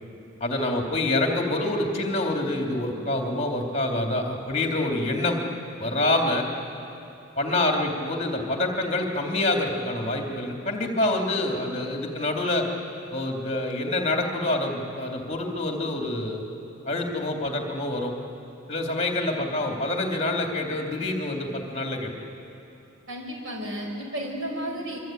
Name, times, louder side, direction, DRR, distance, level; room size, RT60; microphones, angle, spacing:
voice 1, 0.4-5.4 5.8-6.4 7.4-12.7 13.1-16.4 16.9-18.1 18.7-22.1, left 2 dB, 30° left, 1 dB, 2.8 m, -26 dB
voice 2, 23.1-25.0, equal, 85° right, 1 dB, 5.5 m, -33 dB
26.0 x 23.5 x 9.1 m, 2.8 s
head